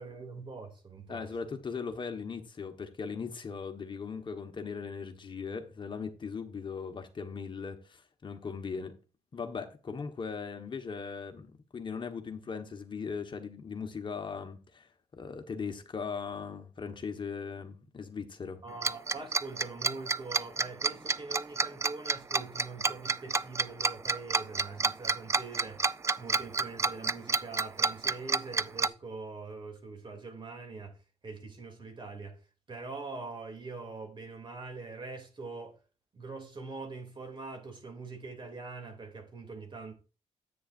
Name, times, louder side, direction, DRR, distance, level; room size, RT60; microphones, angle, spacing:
voice 1, 0.0-1.3 18.6-31.0 31.2-32.4 32.7-35.8 36.1-39.9, right 3 dB, 40° right, 2.9 m, -43 dB
voice 2, 1.1-9.0 9.3-18.6, left 5 dB, 40° left, 1.3 m, -39 dB
Tick-tock, 18.8-28.9, right 4 dB, 25° right, 0.4 m, -28 dB
10.0 x 8.7 x 2.6 m
cardioid pair, 90°, 12 cm